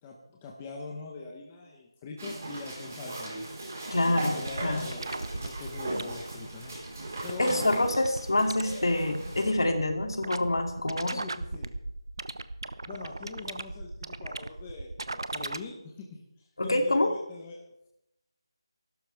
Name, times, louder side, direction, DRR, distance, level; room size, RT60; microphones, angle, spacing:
voice 1, 0.0-3.5 4.1-7.0 7.2-7.8 11.1-11.7 12.8-17.9, left 4 dB, 10° left, 0 dB, 0.9 m, -43 dB
sound 1, 2.2-9.5, right 2 dB, 30° right, 4.4 m, -38 dB
voice 2, 3.9-4.3 4.6-4.9 7.4-11.2 16.6-17.1, left 1 dB, 60° left, 4 dB, 2.6 m, -26 dB
sound 2, 4.4-15.6, right 2 dB, 55° right, 0.9 m, -38 dB
24.0 x 12.5 x 3.5 m, 0.82 s
figure-of-eight pair, 180°, 3 cm